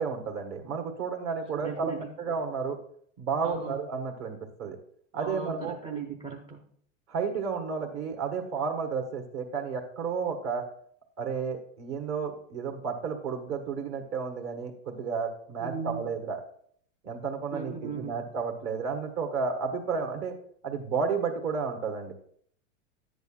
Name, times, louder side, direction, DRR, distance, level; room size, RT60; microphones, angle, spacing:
voice 1, 0.0-1.9 2.2-2.8 3.2-4.8 5.1-5.7 7.1-10.7 11.2-16.4 17.0-20.3 20.6-22.1, right 5 dB, 40° right, 4 dB, 1.5 m, -32 dB
voice 2, 1.6-2.1 3.4-3.8 5.1-6.7 15.6-16.0 17.5-18.2, right 5 dB, 15° right, -1 dB, 0.7 m, -37 dB
10.5 x 8.1 x 2.4 m, 0.62 s
hypercardioid pair, 120°, 39 cm